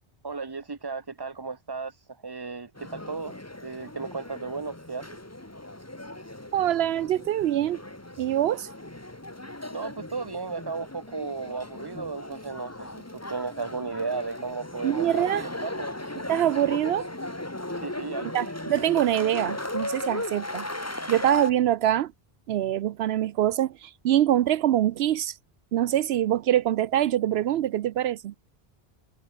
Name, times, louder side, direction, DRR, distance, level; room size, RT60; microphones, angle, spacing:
voice 1, 0.2-1.9 2.2-3.3 3.6-5.1 9.7-13.0 13.3-15.3 15.6-15.9 17.8-18.3, right 4 dB, 25° right, 1.2 m, -34 dB
sound 1, 2.8-21.5, left 1 dB, 15° left, 1.6 m, -37 dB
voice 2, 6.5-7.8 8.2-8.7 14.8-15.5 16.3-17.1 18.2-20.7 21.1-22.1 22.5-25.4 25.7-28.3, right 12 dB, 80° right, 0.8 m, -24 dB
omnidirectional pair, 1.0 m